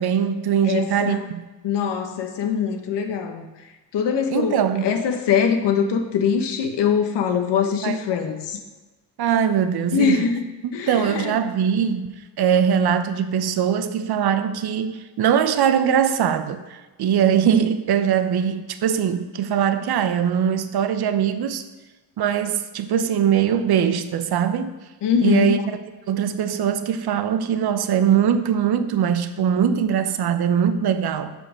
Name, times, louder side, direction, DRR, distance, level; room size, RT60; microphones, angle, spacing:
voice 1, 0.0-1.4 4.3-5.0 7.8-8.0 9.2-10.3 10.9-21.6 22.2-24.7 25.2-25.8 26.1-31.3, right 8 dB, 50° right, 1.0 m, -21 dB
voice 2, 0.6-1.3 1.6-3.5 3.9-8.6 9.9-10.4 10.7-11.3 25.0-25.6, left 7 dB, 60° left, 1.3 m, -22 dB
6.5 x 5.1 x 6.2 m
hypercardioid pair, 55°, 48 cm